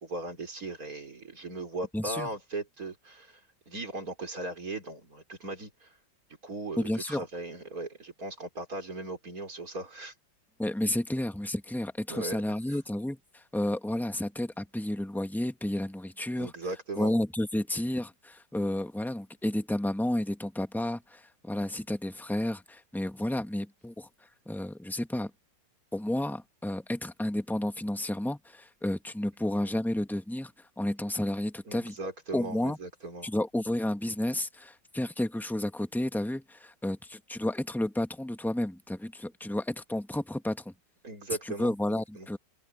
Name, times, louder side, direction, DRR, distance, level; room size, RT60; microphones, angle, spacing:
voice 1, 0.0-3.4 3.7-5.9 6.4-10.1 12.1-12.4 12.7-12.8 16.4-17.1 31.7-33.3 41.0-42.3, right 2 dB, 50° right, 4.9 m, -38 dB
voice 2, 1.9-2.3 6.8-7.2 10.6-16.5 17.0-24.1 24.5-25.3 25.9-31.9 32.3-32.8 33.2-40.7 41.4-42.4, left 1 dB, ahead, 1.0 m, -31 dB
open air
omnidirectional pair, 2.0 m